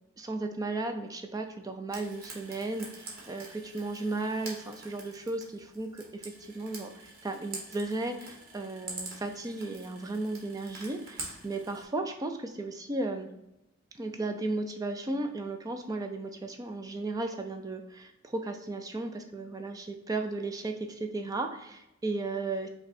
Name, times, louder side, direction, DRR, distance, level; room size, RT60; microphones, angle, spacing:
voice 1, 0.2-13.3 13.9-22.7, right 2 dB, 15° right, 5 dB, 0.3 m, -35 dB
Frying (food), 1.9-11.8, right 3 dB, 45° right, 1.2 m, -46 dB
5.2 x 2.3 x 4.1 m, 0.87 s
head